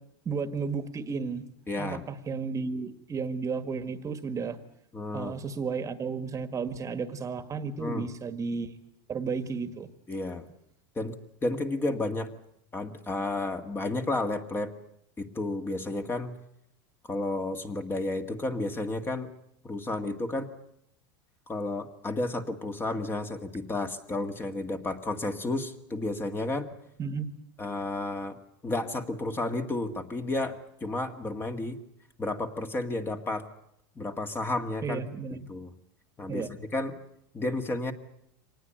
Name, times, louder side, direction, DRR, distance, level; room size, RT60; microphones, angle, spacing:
voice 1, 0.2-1.4 1.8-4.6 5.1-8.7 9.1-9.9 27.0-27.3 34.8-35.5 36.3-36.5, right 5 dB, 25° right, 11 dB, 1.7 m, -33 dB
voice 2, 1.7-2.0 4.9-5.4 7.8-8.1 10.1-10.4 11.0-11.1 11.4-12.3 12.7-14.7 15.2-16.3 17.0-19.3 19.6-20.5 21.5-26.7 27.6-28.4 28.6-31.8 32.2-33.5 34.0-35.0 35.5-35.7 36.2-37.0 37.3-37.9, left 2 dB, 15° left, 6 dB, 1.9 m, -32 dB
25.0 x 19.5 x 9.0 m, 0.76 s
supercardioid pair, 130°, 13 cm